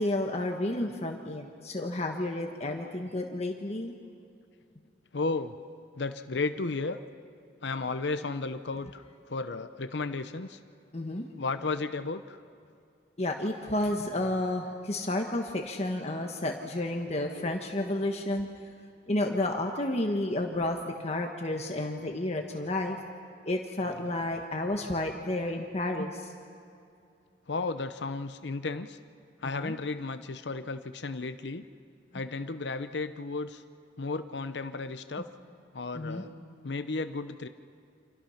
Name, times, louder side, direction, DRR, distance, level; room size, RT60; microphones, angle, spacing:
voice 1, 0.0-3.9 10.9-11.3 13.2-18.5 19.1-23.0 23.5-26.3 29.4-29.7 35.9-36.2, left 1 dB, 35° left, 2 dB, 1.4 m, -31 dB
voice 2, 5.1-5.6 5.9-7.0 7.6-10.6 11.4-12.4 27.5-29.0 29.4-31.7 32.1-33.6 34.0-35.3 35.7-36.3 36.6-37.5, left 3 dB, 70° left, 10 dB, 0.8 m, -33 dB
29.5 x 27.0 x 5.8 m, 2.5 s
head